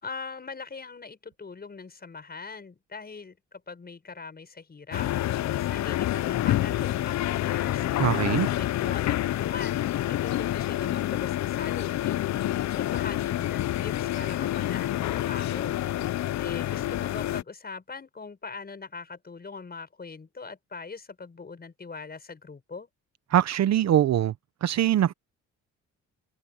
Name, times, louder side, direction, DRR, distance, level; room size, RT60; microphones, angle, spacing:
voice 1, 0.0-5.1 5.5-7.9 8.4-12.3 12.7-16.1 16.4-22.9, left 4 dB, 30° left, 6.5 m, -41 dB
sound 1, 4.9-17.4, left 14 dB, 65° left, 0.6 m, -28 dB
voice 2, 8.0-8.5 23.3-24.3 24.6-25.1, right 11 dB, 60° right, 0.9 m, -22 dB
cardioid pair, 90°, 30 cm